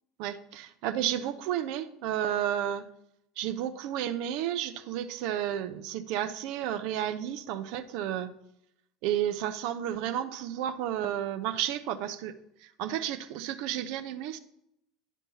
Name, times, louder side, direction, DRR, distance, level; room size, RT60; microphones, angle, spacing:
voice 1, 0.2-2.9 3.4-8.3 9.0-12.3 12.6-14.4, right 11 dB, 55° right, 10 dB, 0.6 m, -32 dB
10.0 x 5.4 x 4.1 m, 0.77 s
figure-of-eight pair, 70°, 0 cm